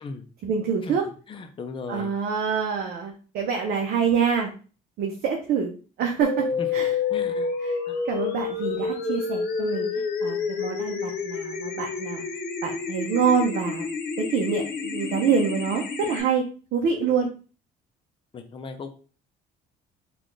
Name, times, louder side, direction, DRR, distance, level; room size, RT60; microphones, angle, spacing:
voice 1, 0.4-1.1 1.9-4.5 5.0-5.7 6.0-6.5 6.7-7.0 7.6-7.8 8.1-12.2 12.6-13.9 14.2-16.4 16.7-17.3, right 6 dB, 65° right, 1 dB, 0.7 m, -26 dB
voice 2, 1.3-2.1 6.6-6.7 7.1-7.5 7.9-8.0 18.3-18.9, left 4 dB, 30° left, 7 dB, 0.6 m, -37 dB
sound 1, 6.2-16.2, left 5 dB, 70° left, 0.9 m, -29 dB
4.0 x 2.5 x 3.2 m, 0.37 s
cardioid pair, 110°, 17 cm